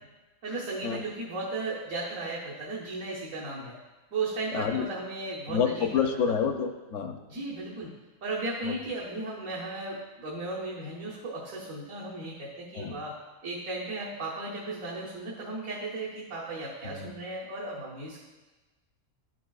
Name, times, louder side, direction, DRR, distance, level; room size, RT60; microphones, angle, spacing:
voice 1, 0.4-3.7 4.1-6.0 6.3-6.4 7.3-7.9 8.2-13.2 13.4-18.2, right 2 dB, 80° right, -6 dB, 1.6 m, -35 dB
voice 2, 4.5-4.9 5.5-7.2 8.7-8.8 12.7-13.0 16.8-17.1, left 7 dB, 70° left, 6 dB, 0.9 m, -28 dB
11.5 x 6.0 x 2.4 m, 1.2 s
omnidirectional pair, 1.4 m